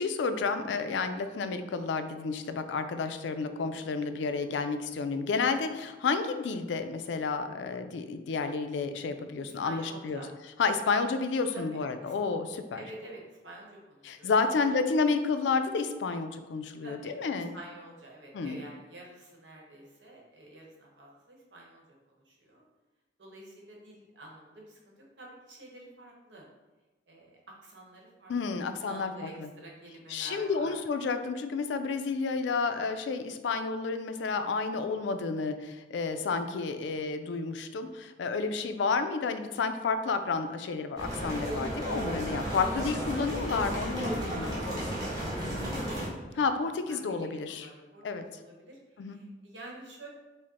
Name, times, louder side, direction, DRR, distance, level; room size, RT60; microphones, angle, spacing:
voice 1, 0.0-10.2 10.6-12.8 14.0-17.5 18.3-18.6 28.3-29.5 30.1-44.6 46.3-47.7 48.0-48.3 49.0-49.2, left 4 dB, 80° left, 9 dB, 0.4 m, -31 dB
voice 2, 9.4-10.3 11.5-12.1 12.7-14.8 16.8-22.6 23.2-26.4 27.1-30.8 42.1-43.5 44.1-46.4 46.9-48.0 48.3-50.1, right 2 dB, 80° right, -2 dB, 1.0 m, -49 dB
sound 1, 41.0-46.1, equal, 20° right, 1.2 m, -33 dB
5.0 x 2.1 x 4.1 m, 1.2 s
head